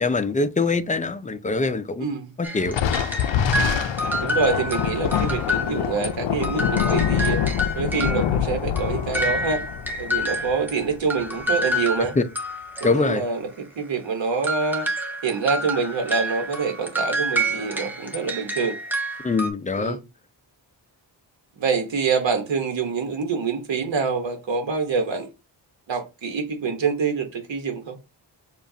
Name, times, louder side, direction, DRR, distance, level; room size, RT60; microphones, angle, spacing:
voice 1, 0.0-2.1 2.4-2.8 12.2-12.3 12.8-13.2 19.2-20.0, left 3 dB, 20° left, 0.4 m, -23 dB
voice 2, 2.0-2.3 4.2-7.4 7.7-9.6 10.0-12.1 12.8-14.9 15.2-18.8 19.7-20.0 21.6-25.3 25.9-28.0, right 5 dB, 80° right, 1.2 m, -26 dB
sound 1, 2.4-6.1 6.4-10.8 11.1-13.4 14.4-19.5, equal, 5° right, 0.8 m, -28 dB
Thunder, 2.7-11.4, left 9 dB, 85° left, 0.6 m, -25 dB
6.9 x 2.4 x 2.7 m
wide cardioid pair, 135°, 44 cm